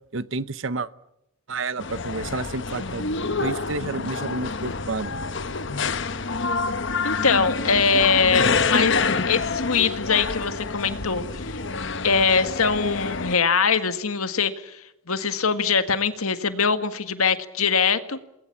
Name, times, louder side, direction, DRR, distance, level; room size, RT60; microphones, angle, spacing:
voice 1, 0.1-0.9 1.5-3.0 3.4-5.1, right 3 dB, 60° right, 16 dB, 0.9 m, -30 dB
sound 1, 1.8-13.4, left 4 dB, 55° left, 1.1 m, -27 dB
voice 2, 7.0-9.0 9.3-11.6 12.0-18.2, left 5 dB, 85° left, 10 dB, 1.8 m, -22 dB
28.5 x 20.0 x 8.6 m, 0.87 s
head